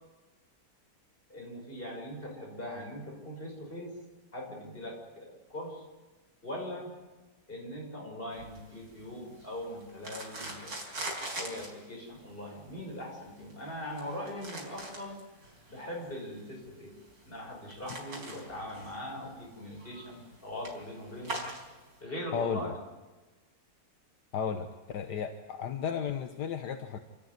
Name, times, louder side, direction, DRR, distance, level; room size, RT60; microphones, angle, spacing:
voice 1, 1.3-3.9 4.3-5.9 6.4-6.9 7.5-10.8 11.3-15.2 15.7-16.9 17.2-21.4 22.0-22.8, left 1 dB, 30° left, -1 dB, 6.3 m, -41 dB
sound 1, 8.3-22.0, right 2 dB, 65° right, 5.2 m, -44 dB
voice 2, 22.3-22.7 24.3-27.0, left 7 dB, 75° left, 7 dB, 1.6 m, -34 dB
28.0 x 14.0 x 9.5 m, 1.2 s
omnidirectional pair, 1.8 m